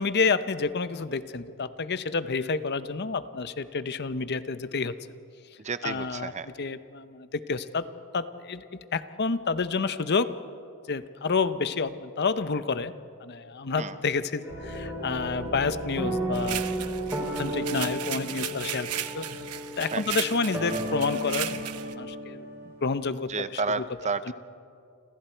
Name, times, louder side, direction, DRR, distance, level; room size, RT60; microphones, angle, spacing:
voice 1, 0.0-5.0 5.8-6.3 6.6-7.9 8.1-10.3 10.9-12.9 13.2-16.8 17.2-19.3 19.8-21.6 21.9-22.5 22.8-23.3, left 4 dB, 50° left, 13 dB, 0.8 m, -29 dB
voice 2, 5.6-6.5 13.8-14.0 19.9-20.0 23.3-24.3, right 4 dB, 30° right, 12 dB, 0.6 m, -31 dB
sound 1, 14.4-22.8, right 1 dB, 15° right, 6.3 m, -34 dB
sound 2, 14.5-18.4, equal, 70° right, 4.5 m, -40 dB
sound 3, 16.3-21.9, right 11 dB, 85° right, 1.0 m, -36 dB
29.0 x 27.0 x 4.5 m, 2.5 s
head